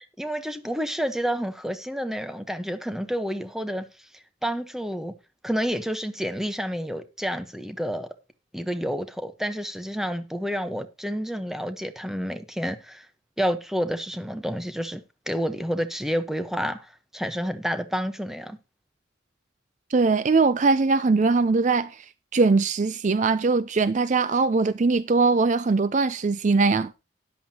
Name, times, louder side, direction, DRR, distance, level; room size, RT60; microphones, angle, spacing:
voice 1, 0.0-3.9 4.4-5.1 5.4-8.1 8.5-13.1 13.4-15.0 15.3-18.6, equal, ahead, 1.0 m, -29 dB
voice 2, 19.9-22.0 22.3-26.9, right 4 dB, 40° right, 0.4 m, -21 dB
13.0 x 10.5 x 2.9 m
head